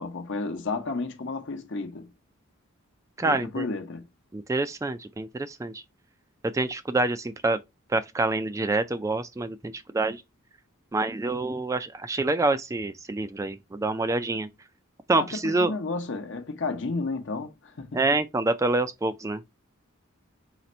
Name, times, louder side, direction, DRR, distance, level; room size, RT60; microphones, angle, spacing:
voice 1, 0.0-2.1 3.2-4.1 15.1-18.0, left 3 dB, 60° left, 0.8 m, -32 dB
voice 2, 3.2-3.7 4.3-5.8 6.4-7.6 7.9-10.2 10.9-14.5 15.1-15.7 17.9-19.4, right 2 dB, 15° right, 0.3 m, -27 dB
4.1 x 2.5 x 4.2 m
head